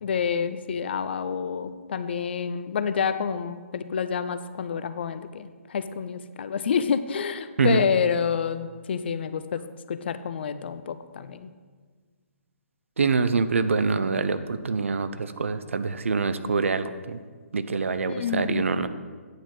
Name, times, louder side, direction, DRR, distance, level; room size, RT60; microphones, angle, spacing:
voice 1, 0.0-9.6 9.9-11.5 18.1-18.6, left 7 dB, 45° left, 12 dB, 0.4 m, -28 dB
voice 2, 13.0-17.2 17.5-18.9, right 4 dB, 65° right, 12 dB, 0.5 m, -25 dB
8.9 x 4.8 x 5.3 m, 1.5 s
figure-of-eight pair, 130°, 8 cm